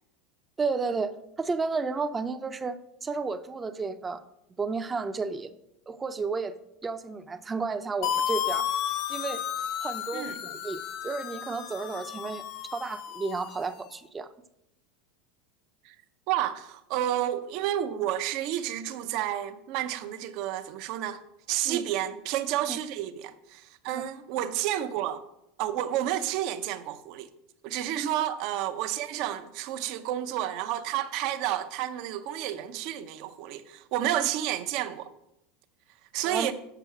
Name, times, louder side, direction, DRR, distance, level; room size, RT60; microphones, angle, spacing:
voice 1, 0.6-4.2 4.6-5.5 5.9-6.6 6.8-8.7 9.1-9.4 9.8-12.4 12.7-14.3 21.7-21.9 22.7-22.8 23.9-24.1 27.9-28.1 36.2-36.5, right 4 dB, 20° right, 0.6 m, -32 dB
sound 1, 8.0-13.8, left 9 dB, 55° left, 0.5 m, -33 dB
voice 2, 16.3-21.2 21.5-25.2 25.6-27.3 27.6-35.1 36.1-36.5, right 12 dB, 60° right, 0.7 m, -30 dB
6.9 x 5.4 x 5.9 m
supercardioid pair, 110°, 0 cm